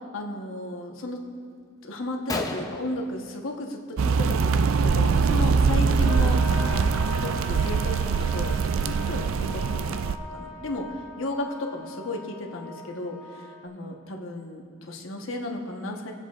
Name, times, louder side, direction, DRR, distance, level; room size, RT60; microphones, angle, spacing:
voice 1, 0.1-1.2 1.8-6.4 6.7-6.8 7.2-10.0 10.3-10.9 11.2-16.1, left 1 dB, 70° left, 1 dB, 1.2 m, -34 dB
Gunshot gunfire, 1.6-1.7 2.0-2.1 2.3-3.9 4.2-4.6 4.8-5.1 5.9-6.0 6.6-6.7 7.1-8.7, left 2 dB, 15° left, 0.6 m, -36 dB
sound 1, 4.0-10.2, right 5 dB, 75° right, 0.4 m, -23 dB
sound 2, 6.0-13.7, left 2 dB, 5° right, 1.5 m, -40 dB
21.0 x 7.8 x 2.5 m, 2.1 s
head